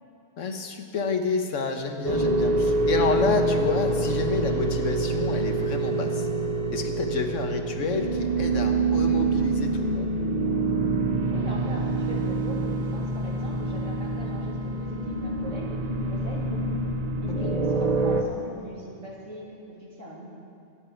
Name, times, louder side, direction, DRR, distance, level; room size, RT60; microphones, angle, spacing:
voice 1, 0.4-6.3 6.7-10.1 17.3-17.6, left 4 dB, 80° left, 5 dB, 1.5 m, -29 dB
sound 1, 2.0-18.2, right 2 dB, 35° right, 0.9 m, -26 dB
voice 2, 11.3-16.8 17.2-20.3, right 1 dB, 80° right, -5 dB, 3.5 m, -40 dB
25.5 x 9.7 x 4.6 m, 2.7 s
omnidirectional pair, 1.3 m